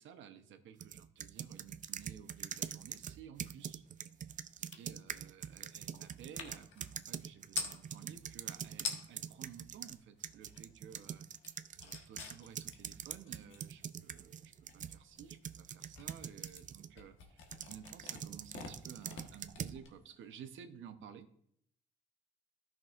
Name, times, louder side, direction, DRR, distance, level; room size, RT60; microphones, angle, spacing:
voice 1, 0.0-3.8 4.6-11.3 11.8-21.3, right 8 dB, 75° right, 9 dB, 0.8 m, -54 dB
sound 1, 0.8-10.0 10.2-16.9 17.5-19.8, right 8 dB, 40° right, 0.4 m, -44 dB
sound 2, 4.7-4.9 5.1-7.8 8.5-8.6 8.8-9.3 9.7-10.8 11.1-20.4, left 5 dB, 75° left, 1.3 m, -47 dB
13.5 x 6.0 x 2.4 m, 0.68 s
cardioid pair, 90°, 20 cm